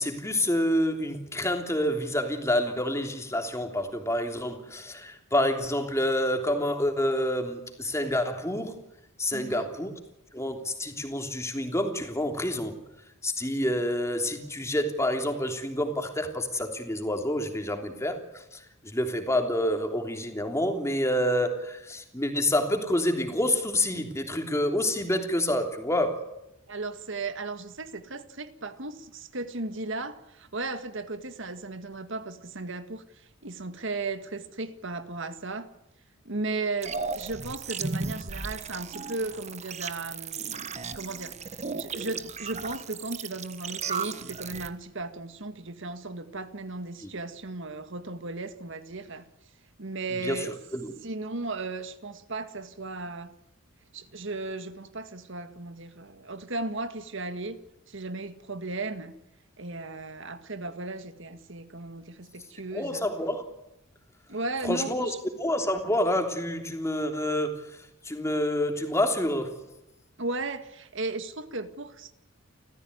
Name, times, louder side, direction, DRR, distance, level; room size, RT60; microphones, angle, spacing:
voice 1, 0.0-8.7 9.2-9.9 10.3-12.7 13.2-26.2 47.0-47.1 50.2-50.9 62.7-63.4 64.6-65.1 65.4-69.6, left 1 dB, 15° left, 3.2 m, -28 dB
voice 2, 9.3-9.7 26.7-33.0 33.4-35.7 36.3-41.4 41.8-49.3 49.8-50.6 51.0-53.3 53.9-57.6 57.9-59.1 59.6-63.1 64.3-65.2 70.2-72.1, right 3 dB, 60° right, 1.9 m, -36 dB
sound 1, 36.8-44.7, right 4 dB, 35° right, 1.3 m, -35 dB
30.0 x 15.0 x 9.6 m
head